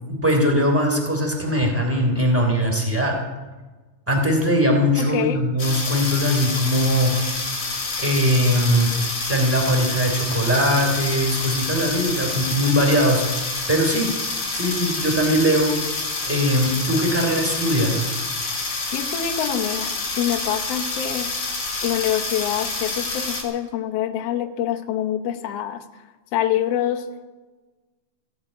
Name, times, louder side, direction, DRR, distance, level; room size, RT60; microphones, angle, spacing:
voice 1, 0.0-3.1 4.1-7.1 8.0-8.9 9.3-13.2 13.7-14.1 14.5-15.7 16.2-18.0, equal, 5° right, 1 dB, 2.7 m, -20 dB
voice 2, 5.0-5.4 18.9-21.3 21.8-25.9 26.3-27.1, left 11 dB, 80° left, 5 dB, 1.4 m, -25 dB
sound 1, 5.6-23.4, left 3 dB, 40° left, 3.2 m, -28 dB
16.0 x 8.7 x 8.8 m, 1.3 s
omnidirectional pair, 4.0 m